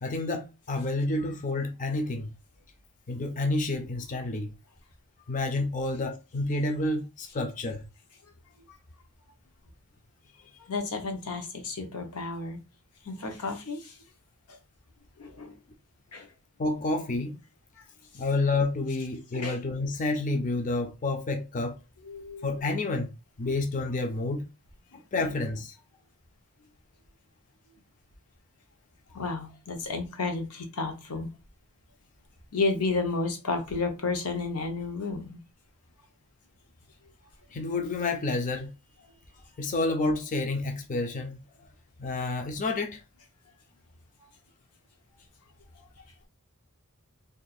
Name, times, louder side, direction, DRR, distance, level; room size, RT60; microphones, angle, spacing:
voice 1, 0.0-2.3 3.1-4.5 5.3-7.8 16.6-17.4 18.1-21.8 22.4-23.1 23.4-24.5 24.9-25.8 37.5-38.7 39.6-41.7 42.0-43.0, left 2 dB, 35° left, 0.4 m, -29 dB
voice 2, 10.7-12.6 13.0-14.0 15.2-15.5 16.1-16.3 19.3-19.6 22.1-22.5 29.1-31.3 32.5-35.4, left 3 dB, 80° left, 0.9 m, -32 dB
2.5 x 2.4 x 4.1 m
head